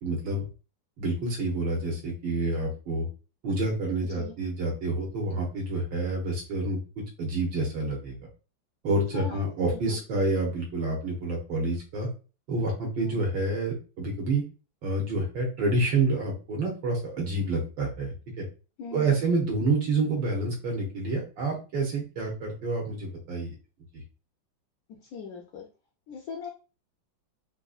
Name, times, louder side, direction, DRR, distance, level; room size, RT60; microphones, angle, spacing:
voice 1, 0.0-0.4 1.0-3.1 3.4-8.1 8.8-12.1 12.5-14.4 14.8-18.5 18.9-23.5, right 2 dB, 70° right, -1 dB, 1.5 m, -28 dB
voice 2, 9.1-10.0 13.0-13.2 18.8-19.2 24.9-25.7 26.1-26.5, left 5 dB, 80° left, 1 dB, 0.8 m, -40 dB
3.9 x 2.6 x 2.4 m, 0.34 s
omnidirectional pair, 2.2 m